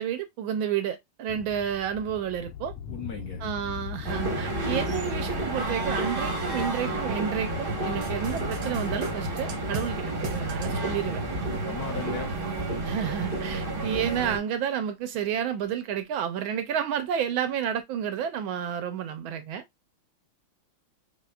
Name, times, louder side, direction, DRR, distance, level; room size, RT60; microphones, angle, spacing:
voice 1, 0.0-2.7 3.4-11.2 12.8-19.6, right 9 dB, 75° right, 1.3 m, -30 dB
sound 1, 1.3-11.7, left 7 dB, 85° left, 1.6 m, -40 dB
voice 2, 2.9-3.4 11.6-12.3, left 6 dB, 55° left, 1.3 m, -36 dB
sound 2, 4.0-14.4, right 2 dB, 35° right, 0.9 m, -31 dB
sound 3, 8.0-9.9 10.2-10.7, right 2 dB, 55° right, 1.1 m, -36 dB
5.8 x 2.7 x 2.3 m
omnidirectional pair, 2.4 m